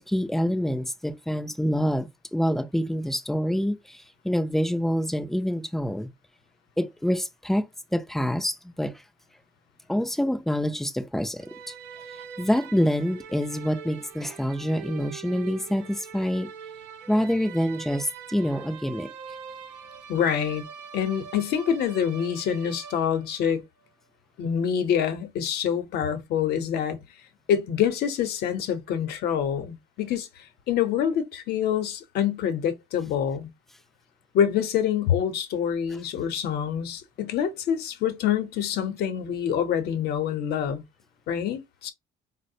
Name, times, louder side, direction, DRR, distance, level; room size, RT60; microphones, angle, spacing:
voice 1, 0.1-6.1 6.8-7.7 7.9-9.0 9.9-11.7 12.4-16.5 17.1-19.1, equal, ahead, 0.4 m, -26 dB
sound 1, 11.4-23.5, right 7 dB, 90° right, 0.5 m, -43 dB
voice 2, 20.1-20.6 20.9-23.6 24.4-27.0 27.5-33.5 34.3-40.8 41.3-41.9, left 8 dB, 70° left, 0.7 m, -26 dB
4.0 x 2.1 x 2.6 m
cardioid pair, 110°, 17 cm